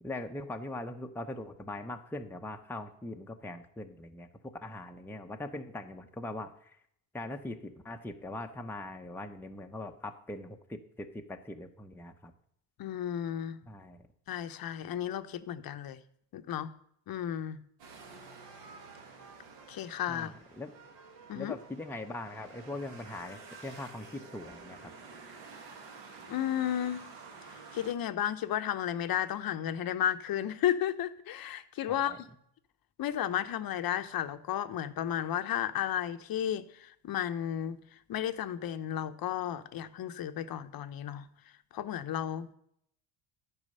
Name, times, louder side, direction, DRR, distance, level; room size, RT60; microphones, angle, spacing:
voice 1, 0.0-6.8 7.1-12.3 13.7-14.0 20.1-20.7 21.3-24.9 31.9-32.2, left 2 dB, 5° left, 4 dB, 0.7 m, -41 dB
voice 2, 12.8-13.6 14.3-16.0 16.3-16.7 17.1-17.6 19.7-20.3 21.3-21.6 26.3-27.0 27.5-32.3 33.0-41.3 41.7-42.5, left 10 dB, 50° left, 11 dB, 0.8 m, -33 dB
sound 1, 17.8-27.9, right 4 dB, 60° right, 1.7 m, -50 dB
11.0 x 4.8 x 5.4 m, 0.71 s
supercardioid pair, 85°, 47 cm